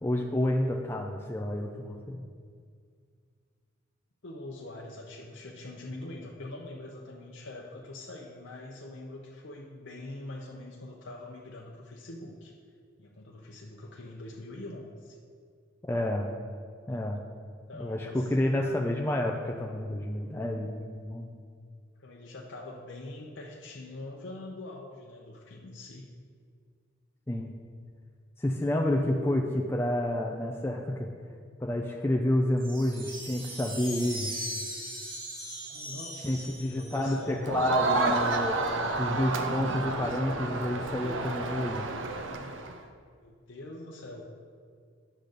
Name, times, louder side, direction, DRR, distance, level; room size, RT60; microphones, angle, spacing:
voice 1, 0.0-2.2 15.8-16.3 16.9-17.2 17.7-21.3 27.3-27.5 28.4-31.1 31.6-34.3 36.2-38.6 39.0-41.9, left 1 dB, 10° left, 0 dB, 0.4 m, -29 dB
voice 2, 4.2-12.5 13.0-15.2 17.7-18.3 18.6-18.8 22.0-26.1 35.7-37.8 43.2-44.3, left 2 dB, 65° left, -2 dB, 0.8 m, -43 dB
sound 1, 32.6-37.3, right 1 dB, 45° right, 2.2 m, -39 dB
Crowd, 37.4-42.8, right 3 dB, 70° right, 0.6 m, -30 dB
10.0 x 4.0 x 6.6 m, 2.1 s
head